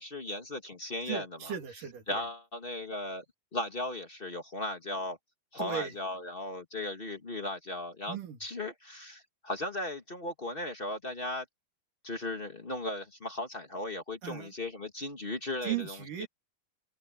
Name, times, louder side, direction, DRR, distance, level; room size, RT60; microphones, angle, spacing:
voice 1, 0.0-1.5 2.1-3.2 3.5-5.2 5.5-11.4 12.0-16.3, left 2 dB, 30° left, 1.0 m, -37 dB
voice 2, 1.1-2.2 5.6-5.9 8.1-8.4 14.2-14.5 15.6-16.3, right 9 dB, 90° right, 4.1 m, -37 dB
open air
omnidirectional pair, 3.6 m